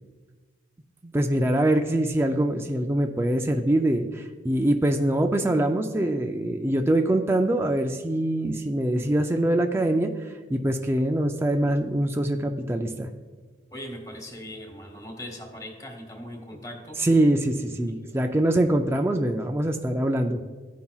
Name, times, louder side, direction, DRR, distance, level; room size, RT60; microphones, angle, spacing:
voice 1, 1.0-13.1 17.0-20.4, right 1 dB, 15° right, 4 dB, 0.3 m, -24 dB
voice 2, 13.7-17.0 17.9-18.2, equal, 20° left, 2 dB, 1.3 m, -40 dB
15.0 x 5.5 x 2.3 m, 1.5 s
head